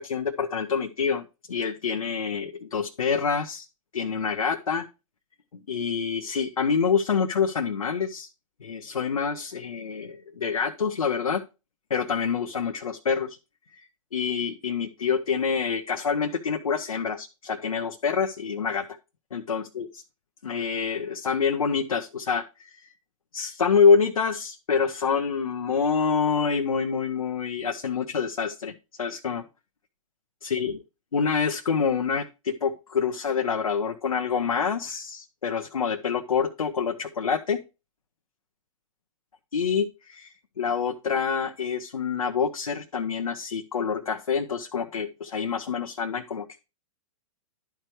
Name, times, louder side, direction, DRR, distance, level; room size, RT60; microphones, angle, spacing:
voice 1, 0.0-3.7 3.9-4.9 5.7-8.3 8.6-11.4 11.9-13.4 13.7-19.0 19.3-20.0 20.4-22.9 23.3-28.7 29.0-29.4 30.4-30.7 31.1-37.6 39.5-46.6, left 6 dB, 90° left, 6 dB, 0.6 m, -26 dB
11.5 x 4.5 x 3.0 m, 0.29 s
hypercardioid pair, 115°, 17 cm